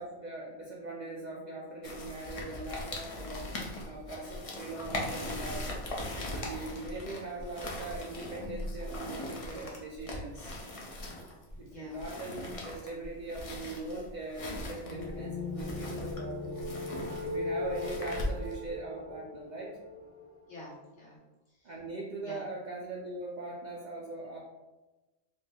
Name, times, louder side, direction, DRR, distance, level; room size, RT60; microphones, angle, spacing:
voice 1, 0.0-3.5 3.8-5.7 6.3-10.6 11.6-16.6 17.2-19.8 21.6-24.4, right 2 dB, 60° right, -4 dB, 0.4 m, -41 dB
sound 1, 1.8-18.7, left 1 dB, 50° left, 0.4 m, -40 dB
voice 2, 11.0-12.0 20.5-21.2 21.5-21.7 22.2-22.4, left 2 dB, 75° left, -5 dB, 1.2 m, -49 dB
sound 2, 14.8-20.7, left 2 dB, 20° right, 1.6 m, -38 dB
3.1 x 3.0 x 2.2 m, 1.1 s
omnidirectional pair, 1.2 m